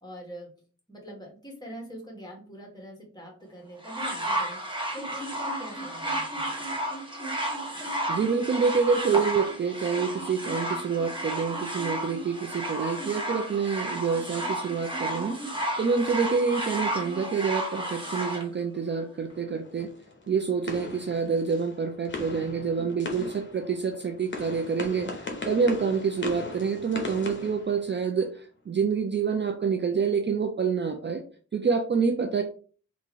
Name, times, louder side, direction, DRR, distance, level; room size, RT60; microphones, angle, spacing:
voice 1, 0.0-0.5 0.9-4.6 4.9-6.7 32.2-32.4, equal, 15° left, 0 dB, 1.5 m, -43 dB
sound 1, 3.8-18.4 19.3-19.4, right 1 dB, 15° right, 1.0 m, -32 dB
voice 2, 8.1-15.4 15.8-19.9 20.3-25.1 25.5-31.2 31.5-32.4, right 5 dB, 40° right, 5 dB, 0.4 m, -27 dB
sound 2, 19.3-28.4, left 3 dB, 40° left, 0.9 m, -39 dB
3.6 x 2.5 x 3.0 m, 0.41 s
wide cardioid pair, 75°, 30 cm